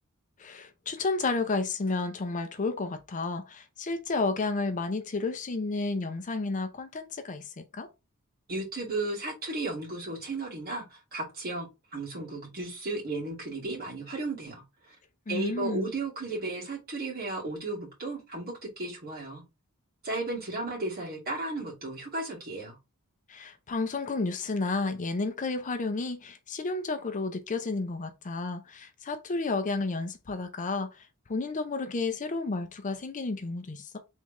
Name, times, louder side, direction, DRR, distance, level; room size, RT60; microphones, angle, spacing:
voice 1, 0.4-7.9 15.3-15.9 23.3-34.0, left 3 dB, 35° left, 0.5 m, -31 dB
voice 2, 8.5-11.7 11.9-15.0 15.3-19.4 20.0-22.8, right 2 dB, 45° right, 2.2 m, -34 dB
3.7 x 3.3 x 3.1 m
head